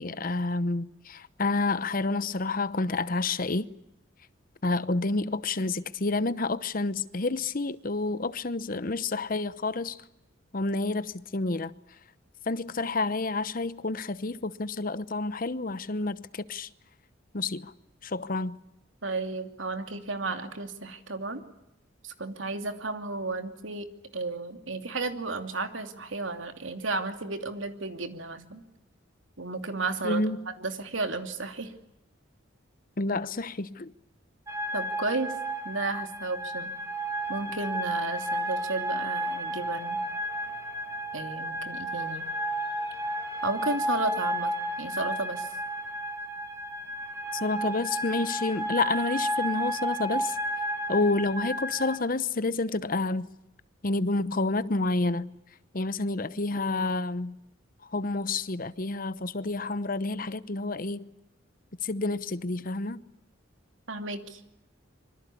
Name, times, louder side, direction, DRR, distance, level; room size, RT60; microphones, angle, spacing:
voice 1, 0.0-3.7 4.6-10.0 10.5-11.7 12.5-16.7 17.3-17.7 18.0-18.6 30.0-30.5 33.0-33.9 47.3-50.4 50.9-53.3 53.8-55.3 55.7-57.4 57.8-61.1 61.8-63.0, left 3 dB, 45° left, 0.9 m, -29 dB
voice 2, 19.0-21.4 22.0-23.9 24.1-28.6 29.4-30.2 30.6-31.7 34.7-35.3 35.6-36.7 37.3-40.0 41.1-42.3 43.4-45.5 63.9-64.4, right 3 dB, 75° right, 2.8 m, -33 dB
sound 1, 34.5-52.0, right 1 dB, 15° right, 2.2 m, -32 dB
sound 2, 37.1-43.5, left 1 dB, 25° left, 5.7 m, -53 dB
25.5 x 24.0 x 8.5 m
head